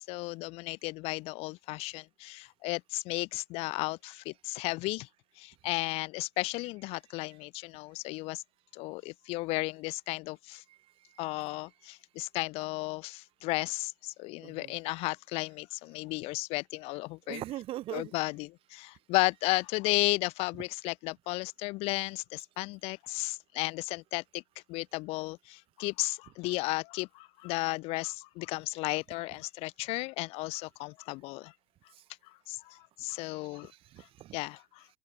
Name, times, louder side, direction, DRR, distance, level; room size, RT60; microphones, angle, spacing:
voice 1, 0.0-5.1 5.4-8.4 8.7-10.6 11.2-17.4 17.9-24.4 24.7-31.5 32.5-33.7 34.3-34.8, left 23 dB, 60° left, 0.7 m, -34 dB
voice 2, 14.4-14.7 17.3-18.1 33.5-34.4, right 14 dB, 50° right, 1.0 m, -41 dB
open air
figure-of-eight pair, 55°, 12 cm